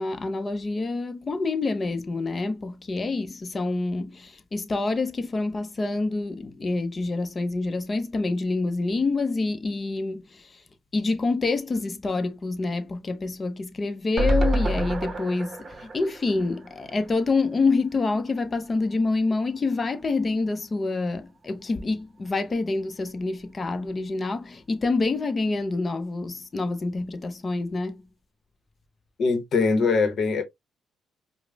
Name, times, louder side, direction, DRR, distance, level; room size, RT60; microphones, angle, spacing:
voice 1, 0.0-10.6 10.9-28.0, left 3 dB, 30° left, 0.6 m, -27 dB
sound 1, 14.2-17.4 17.8-17.9 18.1-18.2, right 1 dB, 35° right, 0.8 m, -28 dB
voice 2, 29.2-30.4, left 4 dB, 60° left, 0.8 m, -22 dB
4.8 x 2.0 x 2.3 m
cardioid pair, 90°, 0 cm